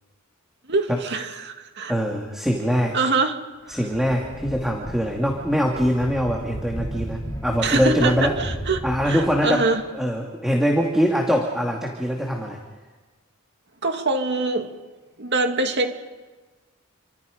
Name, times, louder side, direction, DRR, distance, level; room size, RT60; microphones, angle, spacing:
voice 1, 0.7-1.9 2.9-3.4 3.7-3.8 7.6-9.8 13.8-14.7 15.2-15.9, right 3 dB, 55° right, 5 dB, 2.3 m, -24 dB
voice 2, 1.9-3.0 3.7-8.3 8.8-9.7 9.9-12.6, equal, ahead, 0 dB, 2.3 m, -23 dB
sound 1, 3.7-9.8, equal, 20° left, 3.8 m, -35 dB
29.0 x 25.5 x 5.2 m, 1.3 s
head